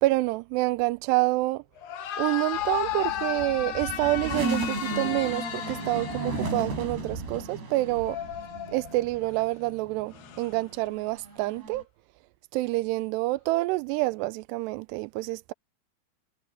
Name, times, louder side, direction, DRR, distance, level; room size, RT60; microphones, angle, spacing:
voice 1, 0.0-1.6 2.2-8.2 8.7-11.8 12.5-15.5, right 20 dB, 90° right, 2.7 m, -27 dB
sound 1, 1.8-6.9 7.9-9.2 10.1-10.5, left 11 dB, 75° left, 3.6 m, -34 dB
sound 2, 2.5-9.4 9.9-11.8, right 3 dB, 75° right, 9.6 m, -35 dB
omnidirectional pair, 4.8 m